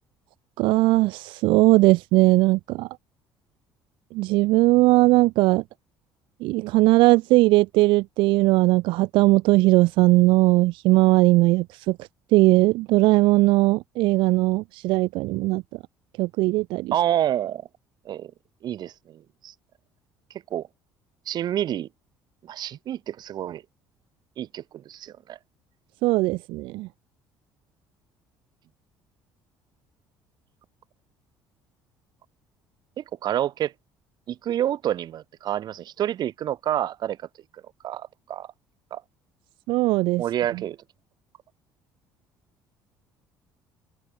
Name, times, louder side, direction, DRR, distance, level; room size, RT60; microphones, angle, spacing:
voice 1, 0.6-2.9 4.1-5.6 6.4-15.6 16.2-16.9 26.0-26.9 39.7-40.2, right 20 dB, 80° right, 1.9 m, -19 dB
voice 2, 16.9-17.7 18.0-18.3 18.6-19.5 20.5-20.7 21.3-21.9 22.4-23.6 24.4-25.4 33.0-33.7 34.3-37.2 37.8-38.5 38.9-39.0 40.2-40.8, right 11 dB, 55° right, 4.6 m, -28 dB
open air
cardioid pair, 110°, 8 cm